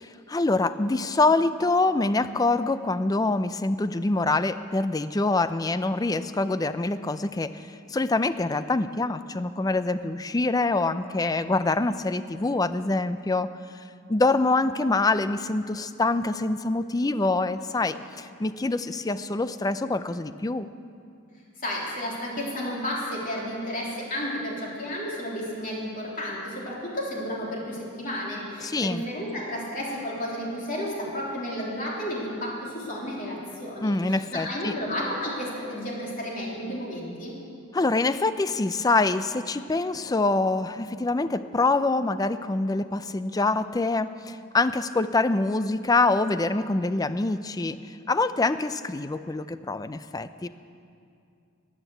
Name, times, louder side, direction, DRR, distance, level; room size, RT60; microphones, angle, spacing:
voice 1, 0.0-7.6 7.9-13.5 14.1-20.7 28.6-29.0 33.8-34.7 37.7-47.8 48.1-50.5, left 3 dB, 20° left, 13 dB, 0.4 m, -25 dB
voice 2, 21.6-37.4, equal, 40° left, -4 dB, 3.4 m, -32 dB
13.5 x 11.0 x 8.0 m, 2.5 s
head